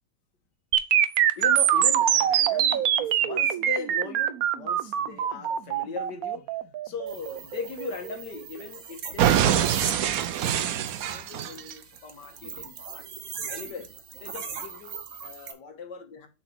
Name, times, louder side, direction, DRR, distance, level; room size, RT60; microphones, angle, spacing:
sound 1, 0.7-8.7 9.2-11.7, right 10 dB, 75° right, 0.8 m, -24 dB
voice 1, 1.4-6.6 6.8-10.6 11.0-13.1 13.5-16.3, left 5 dB, 60° left, 1.7 m, -39 dB
sound 2, 7.1-15.5, right 6 dB, 50° right, 1.0 m, -40 dB
7.0 x 4.2 x 5.8 m
omnidirectional pair, 2.2 m